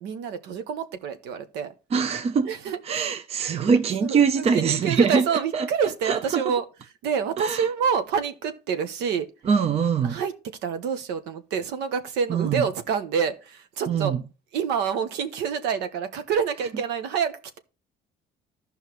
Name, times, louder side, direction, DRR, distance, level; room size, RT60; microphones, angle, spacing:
voice 1, 0.0-1.7 2.4-3.2 4.0-6.6 7.0-9.3 10.0-10.3 10.6-14.2 14.5-17.6, right 7 dB, 90° right, 1.1 m, -27 dB
voice 2, 1.9-2.5 2.8-5.7 6.0-6.5 7.4-7.7 9.4-10.2 12.3-12.7 13.9-14.2, right 6 dB, 35° right, 0.6 m, -23 dB
14.0 x 5.5 x 3.1 m
cardioid pair, 110°, 17 cm